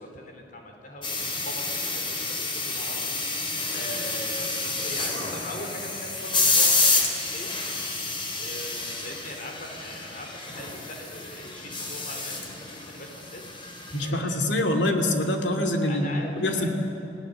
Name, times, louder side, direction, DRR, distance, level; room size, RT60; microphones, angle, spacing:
voice 1, 0.0-7.5 8.4-15.0 15.9-16.7, left 1 dB, 50° left, 2 dB, 3.8 m, -41 dB
sound 1, 1.0-14.1, left 3 dB, 30° left, 3.7 m, -29 dB
voice 2, 13.9-16.1 16.4-16.7, left 1 dB, 85° left, 4 dB, 2.7 m, -25 dB
29.5 x 17.5 x 8.0 m, 3.0 s
head